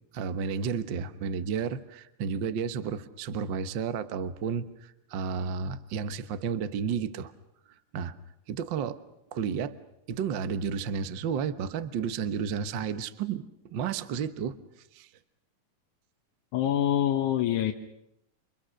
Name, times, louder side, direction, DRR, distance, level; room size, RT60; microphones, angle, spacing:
voice 1, 0.1-7.3 7.9-8.1 8.5-9.0 9.3-9.7 10.1-14.6 14.9-15.1, right 6 dB, 65° right, 11 dB, 1.1 m, -32 dB
voice 2, 16.5-17.7, left 11 dB, 70° left, 4 dB, 2.5 m, -25 dB
30.0 x 25.5 x 6.4 m, 0.79 s
omnidirectional pair, 3.7 m